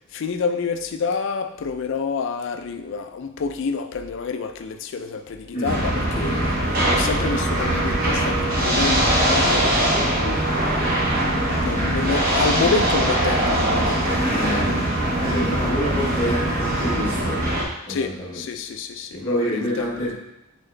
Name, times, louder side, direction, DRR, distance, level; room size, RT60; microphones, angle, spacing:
voice 1, 0.1-6.6 6.9-10.5 11.6-14.5 17.9-19.9, left 5 dB, 65° left, 7 dB, 0.4 m, -28 dB
voice 2, 5.5-5.9 14.3-14.8 15.2-17.5 17.9-18.4 19.1-20.1, equal, 30° left, -11 dB, 1.5 m, -27 dB
sound 1, 5.6-17.6, right 1 dB, 45° right, 1.0 m, -21 dB
4.1 x 3.7 x 3.2 m, 0.91 s
head